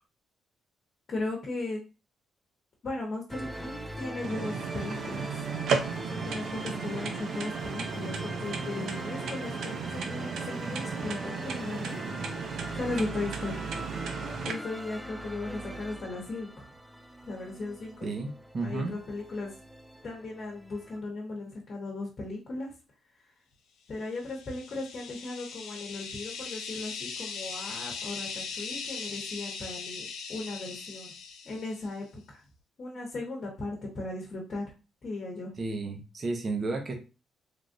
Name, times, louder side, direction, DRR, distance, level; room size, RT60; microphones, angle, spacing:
voice 1, 1.1-1.8 2.8-5.3 6.1-12.0 12.3-12.4 12.8-13.6 14.4-16.7 17.3-18.1 18.6-19.5 20.0-22.7 23.9-30.0 30.3-31.1 31.4-32.4 32.8-34.7 35.0-35.5, left 2 dB, 50° left, -2 dB, 1.0 m, -37 dB
sound 1, 3.3-21.0, right 1 dB, 5° right, 0.3 m, -41 dB
sound 2, 4.2-14.5, right 6 dB, 75° right, 0.5 m, -35 dB
voice 2, 18.0-18.9 35.6-36.9, right 3 dB, 40° right, 3 dB, 0.8 m, -32 dB
sound 3, 24.1-31.9, left 5 dB, 90° left, 0.6 m, -39 dB
3.4 x 2.3 x 2.6 m, 0.31 s
cardioid pair, 90°, 0 cm